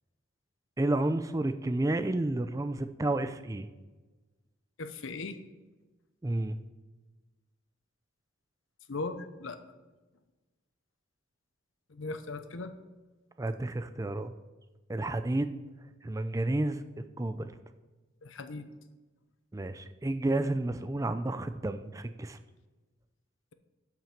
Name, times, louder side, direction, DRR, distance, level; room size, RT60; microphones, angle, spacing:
voice 1, 0.8-3.7 6.2-6.6 13.4-14.3 14.9-15.5 16.0-16.8 17.2-17.5 19.5-22.4, right 2 dB, 15° right, 10 dB, 0.4 m, -31 dB
voice 2, 4.8-5.4 8.9-9.6 11.9-12.7 18.2-18.7, left 3 dB, 70° left, 10 dB, 0.8 m, -38 dB
12.0 x 5.9 x 5.9 m, 1.2 s
head